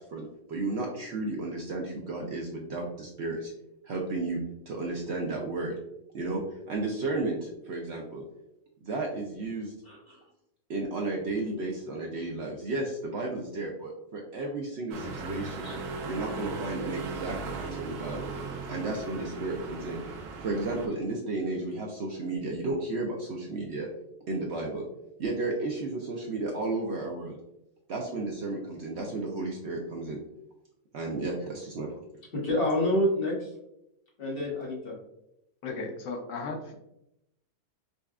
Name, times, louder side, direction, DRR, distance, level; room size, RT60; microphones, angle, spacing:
voice 1, 0.0-3.5 3.8-4.4 4.7-5.8 6.1-8.2 8.8-9.7 10.1-10.2 10.7-15.7 16.0-18.3 18.7-20.0 20.4-23.9 24.3-24.9 25.2-27.4 27.9-30.2 30.9-32.0, right 2 dB, 70° right, 0 dB, 0.6 m, -33 dB
voice 2, 9.8-10.2 15.6-15.8 32.3-33.5 34.2-34.9, left 1 dB, 40° left, -3 dB, 1.1 m, -28 dB
sound 1, 14.9-20.9, right 3 dB, 85° right, 1.2 m, -37 dB
voice 3, 35.6-36.7, left 3 dB, 65° left, 4 dB, 0.9 m, -35 dB
5.3 x 2.2 x 2.3 m, 0.84 s
omnidirectional pair, 1.6 m